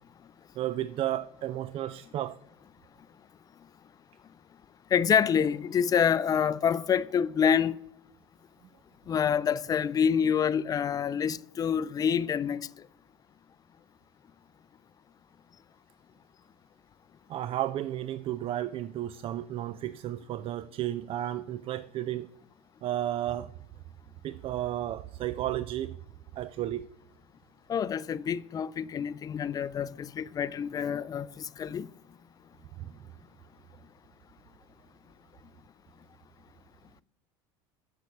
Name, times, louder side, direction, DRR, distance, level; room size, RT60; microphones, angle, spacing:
voice 1, 0.6-2.4 17.3-22.3 22.8-23.5 24.2-25.9 26.4-26.9 32.8-32.9, right 13 dB, 45° right, 0.4 m, -33 dB
voice 2, 4.9-7.8 9.1-12.6 27.7-31.9, left 7 dB, 30° left, 0.4 m, -27 dB
8.2 x 6.7 x 8.3 m
supercardioid pair, 95°, 13 cm